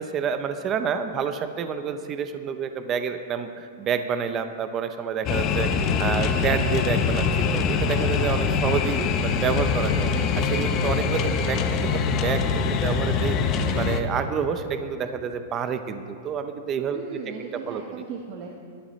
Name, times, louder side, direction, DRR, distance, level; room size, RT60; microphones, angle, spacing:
voice 1, 0.0-10.1 10.3-17.0 17.7-17.8, right 7 dB, 20° right, 8 dB, 0.6 m, -29 dB
sound 1, 5.2-14.0, left 5 dB, 30° left, 0.8 m, -24 dB
voice 2, 16.9-18.5, right 6 dB, 45° right, 1 dB, 1.1 m, -37 dB
21.0 x 13.0 x 3.1 m, 2.3 s
supercardioid pair, 165°, 0 cm